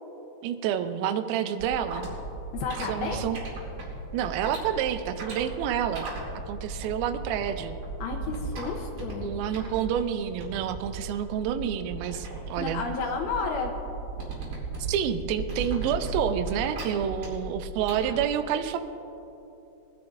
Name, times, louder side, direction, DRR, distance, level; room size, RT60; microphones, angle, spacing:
voice 1, 0.4-2.1 2.9-3.4 4.1-6.1 6.5-7.8 9.2-12.8 14.9-18.8, right 9 dB, 85° right, 8 dB, 2.1 m, -29 dB
sound 1, 1.6-18.2, right 3 dB, 60° right, 4.2 m, -36 dB
voice 2, 2.5-3.2 8.0-9.3 12.6-13.7, left 4 dB, 75° left, 2 dB, 2.5 m, -32 dB
21.5 x 12.0 x 2.6 m, 2.9 s
omnidirectional pair, 5.0 m